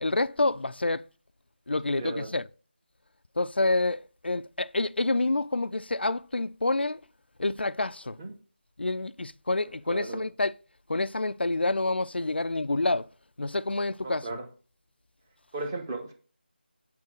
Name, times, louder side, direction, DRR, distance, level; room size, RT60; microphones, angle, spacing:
voice 1, 0.0-1.0 1.7-2.5 3.4-7.0 7.4-8.2 8.8-10.5 10.9-13.1 13.4-14.4, left 2 dB, 70° left, 0.4 m, -28 dB
voice 2, 2.0-2.3 8.2-8.3 9.9-10.3 14.0-14.4 15.5-16.1, right 2 dB, 20° right, 1.0 m, -35 dB
8.5 x 3.9 x 6.2 m
figure-of-eight pair, 165°, 6 cm